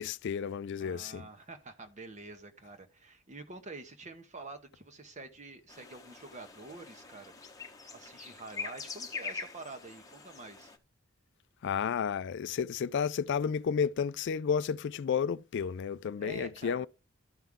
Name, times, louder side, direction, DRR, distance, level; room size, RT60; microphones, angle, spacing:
voice 1, 0.0-1.2 11.6-16.9, left 7 dB, 60° left, 0.3 m, -32 dB
voice 2, 0.8-7.3 7.9-10.7 16.1-16.9, right 3 dB, 35° right, 1.2 m, -47 dB
sound 1, 5.7-10.8, left 5 dB, 15° left, 1.1 m, -44 dB
12.5 x 5.7 x 3.5 m
head